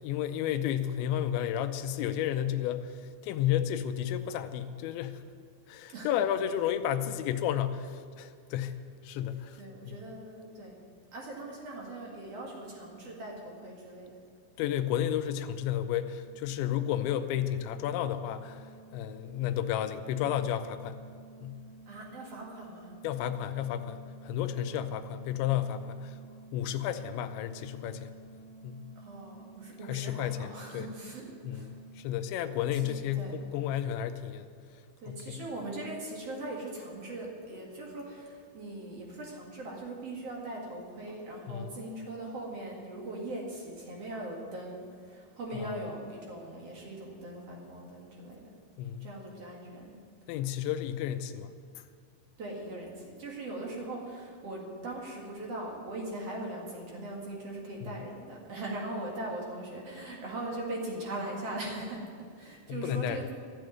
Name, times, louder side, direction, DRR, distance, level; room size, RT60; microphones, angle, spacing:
voice 1, 0.0-5.2 5.7-8.8 9.0-9.6 14.6-21.0 21.4-21.6 23.0-26.2 26.5-28.2 28.6-28.9 29.9-30.9 31.4-34.5 35.1-35.4 41.5-41.8 45.5-45.7 48.8-49.1 50.3-51.5 62.7-63.3, left 10 dB, 85° left, 9 dB, 2.9 m, -32 dB
voice 2, 9.6-10.8 11.1-14.1 21.9-22.9 29.0-31.7 32.7-33.4 35.0-48.5 49.0-49.9 52.4-63.3, right 1 dB, 45° right, -2 dB, 2.2 m, -40 dB
sound 1, 15.5-33.0, right 4 dB, 60° left, 1.6 m, -53 dB
13.5 x 7.8 x 9.1 m, 2.2 s
omnidirectional pair, 5.3 m